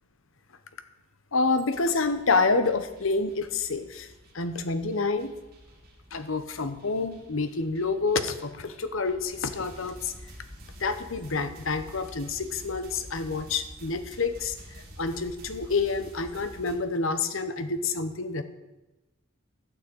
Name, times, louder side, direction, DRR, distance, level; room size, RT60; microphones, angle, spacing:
voice 1, 1.3-4.1 4.3-5.3 6.1-10.1 10.8-14.6 15.0-18.4, left 4 dB, 65° left, 11 dB, 1.0 m, -28 dB
sound 1, 1.7-16.7, equal, 45° right, 2.6 m, -48 dB
12.0 x 6.4 x 8.8 m, 1.0 s
head